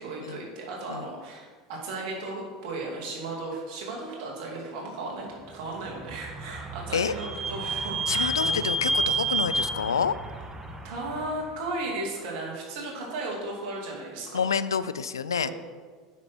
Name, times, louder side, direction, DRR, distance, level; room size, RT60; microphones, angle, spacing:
voice 1, 0.0-8.6 10.8-14.4 15.4-15.5, right 2 dB, 60° right, -2 dB, 2.5 m, -35 dB
Vehicle / Squeak, 5.8-11.4, right 2 dB, 15° right, 1.1 m, -30 dB
voice 2, 8.1-10.2 14.3-15.5, left 6 dB, 90° left, 15 dB, 0.3 m, -28 dB
8.9 x 6.0 x 4.5 m, 1.5 s
hypercardioid pair, 80°, 2 cm